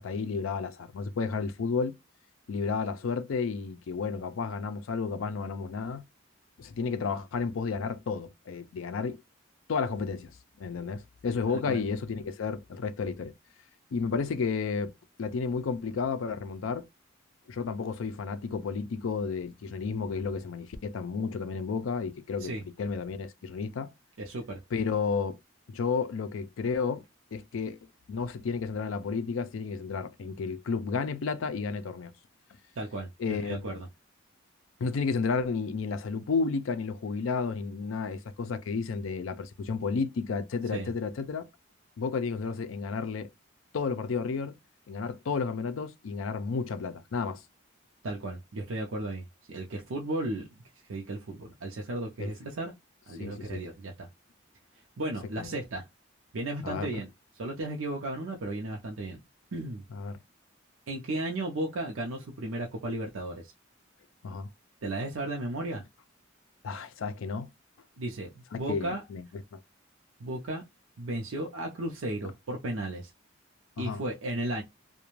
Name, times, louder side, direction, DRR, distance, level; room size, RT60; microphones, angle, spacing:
voice 1, 0.0-1.9 2.5-6.0 6.6-9.2 9.7-13.3 13.9-14.9 15.2-16.9 17.5-23.9 24.7-25.4 25.7-27.0 27.3-27.8 28.1-32.1 33.2-33.7 34.8-41.5 42.0-43.3 43.7-44.6 44.9-47.4 52.2-52.3 53.2-53.6 55.4-55.5 56.6-57.0 59.9-60.2 64.2-64.5 66.6-67.5 68.5-69.6 73.8-74.0, left 5 dB, 80° left, 0.4 m, -32 dB
voice 2, 11.5-11.8 22.4-22.6 24.2-24.6 32.8-33.9 40.7-40.9 48.0-50.5 50.9-52.7 53.1-54.1 55.0-55.9 56.3-57.1 57.4-59.2 59.5-59.8 60.9-63.5 64.8-65.8 68.0-69.0 70.2-70.6 71.0-73.1 73.8-74.6, right 1 dB, 80° right, 0.5 m, -34 dB
2.4 x 2.1 x 3.0 m
head